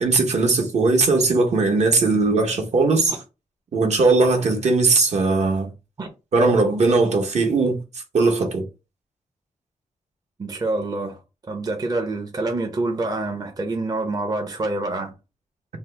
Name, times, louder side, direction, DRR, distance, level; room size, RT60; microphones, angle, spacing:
voice 1, 0.0-3.1 3.7-5.7 6.3-7.8 8.1-8.7, right 3 dB, 60° right, 0.8 m, -19 dB
voice 2, 10.4-11.2 11.5-15.1, right 2 dB, 30° right, 0.6 m, -26 dB
2.7 x 2.0 x 3.2 m
wide cardioid pair, 110°, 13 cm